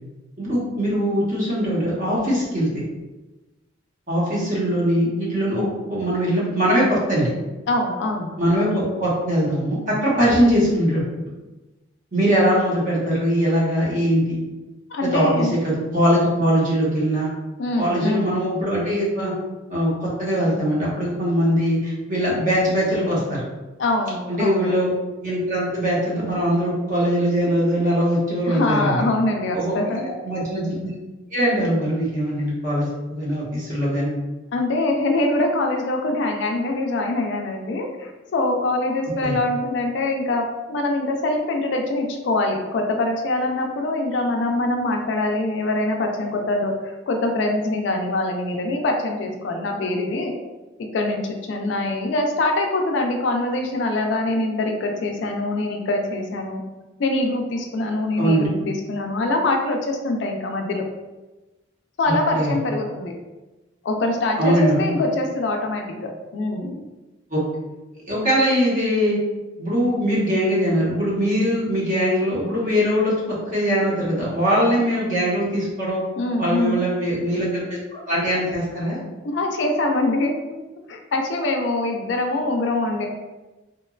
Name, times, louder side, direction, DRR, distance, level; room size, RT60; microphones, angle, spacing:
voice 1, 0.4-2.8 4.1-5.6 5.9-7.3 8.4-11.0 12.1-14.3 15.0-17.3 17.8-19.3 19.7-23.4 24.3-24.9 25.2-29.0 29.5-30.9 31.3-34.1 39.2-39.3 58.2-58.5 62.1-62.5 64.4-65.0 67.3-67.4 68.1-69.2 69.6-76.0 76.4-79.0, equal, 45° right, -6 dB, 0.9 m, -21 dB
voice 2, 7.7-8.3 14.9-15.5 17.6-18.3 23.8-24.7 28.5-30.1 34.5-50.3 50.9-51.2 51.5-56.6 57.0-60.8 62.0-63.1 63.8-66.8 76.2-76.8 79.2-80.3 80.9-83.1, left 2 dB, 65° left, 3 dB, 0.4 m, -24 dB
2.8 x 2.2 x 2.3 m, 1.1 s
head